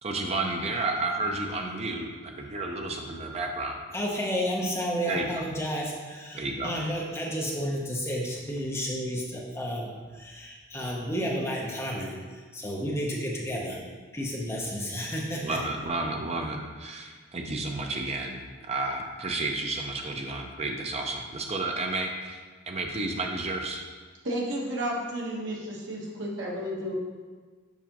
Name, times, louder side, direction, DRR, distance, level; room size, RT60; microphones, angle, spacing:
voice 1, 0.0-3.8 5.1-5.4 6.3-6.7 15.4-22.4 22.7-23.8, right 2 dB, 30° right, 2 dB, 0.6 m, -31 dB
voice 2, 3.9-13.8 14.1-15.6, equal, 10° left, -3 dB, 0.7 m, -31 dB
voice 3, 24.2-27.0, equal, 60° right, -4 dB, 1.2 m, -32 dB
7.1 x 4.9 x 2.9 m, 1.5 s
head